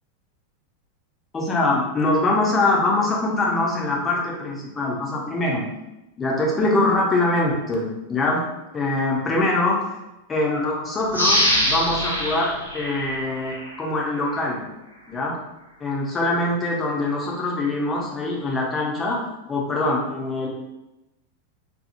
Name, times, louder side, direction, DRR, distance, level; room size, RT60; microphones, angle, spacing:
voice 1, 1.3-5.7 6.2-8.4 8.7-9.8 10.3-14.6 15.1-15.4 15.8-19.2 19.5-20.5, left 2 dB, 20° left, -3 dB, 0.6 m, -23 dB
sound 1, 11.1-13.8 14.3-14.4, left 1 dB, 85° left, 0.6 m, -24 dB
2.7 x 2.7 x 2.5 m, 0.94 s
figure-of-eight pair, 90°, 0 cm